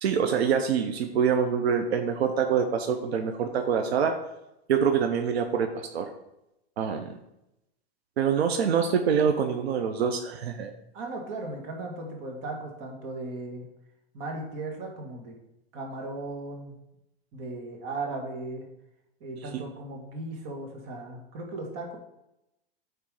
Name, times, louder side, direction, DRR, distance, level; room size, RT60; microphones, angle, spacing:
voice 1, 0.0-4.1 4.7-6.1 6.8-7.2 8.2-10.7 19.4-19.6, right 7 dB, 90° right, 5 dB, 0.8 m, -25 dB
voice 2, 10.9-13.7 14.1-15.4 15.7-16.8 17.3-18.7 19.2-22.0, right 2 dB, 45° right, 1 dB, 1.8 m, -37 dB
8.9 x 3.4 x 4.8 m, 0.87 s
supercardioid pair, 135°, 31 cm